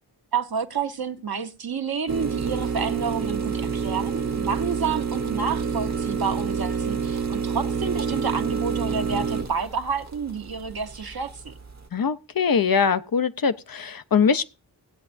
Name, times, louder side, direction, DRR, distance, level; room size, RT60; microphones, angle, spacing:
voice 1, 0.3-11.5, right 6 dB, 60° right, 1.1 m, -29 dB
sound 1, 2.1-11.9, right 6 dB, 40° right, 1.1 m, -28 dB
voice 2, 11.9-14.4, left 6 dB, 55° left, 0.7 m, -22 dB
17.0 x 8.5 x 2.6 m
wide cardioid pair, 80°, 41 cm